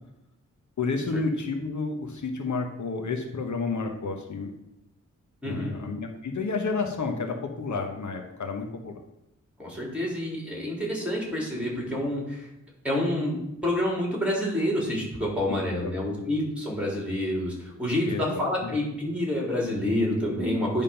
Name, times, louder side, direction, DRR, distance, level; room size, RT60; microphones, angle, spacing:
voice 1, 0.8-4.5 5.4-9.0 15.5-16.2 18.1-18.8, left 4 dB, 75° left, 4 dB, 1.0 m, -31 dB
voice 2, 5.4-5.8 9.6-12.5 12.8-13.4 13.6-20.8, left 1 dB, 5° right, -2 dB, 3.4 m, -28 dB
10.0 x 3.6 x 5.7 m, 0.89 s
cardioid pair, 70°, 30 cm